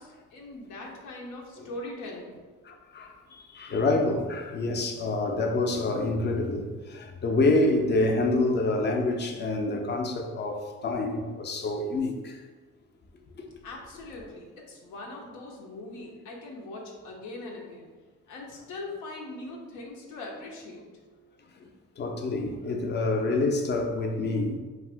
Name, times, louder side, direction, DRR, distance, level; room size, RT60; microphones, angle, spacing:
voice 1, 0.0-2.4 13.6-17.9 18.3-20.9, left 2 dB, 85° left, -1 dB, 0.6 m, -41 dB
voice 2, 2.7-3.1 3.5-12.3 13.4-13.5 22.0-24.6, left 2 dB, 35° left, 3 dB, 0.5 m, -27 dB
2.5 x 2.3 x 3.4 m, 1.3 s
cardioid pair, 90°, 30 cm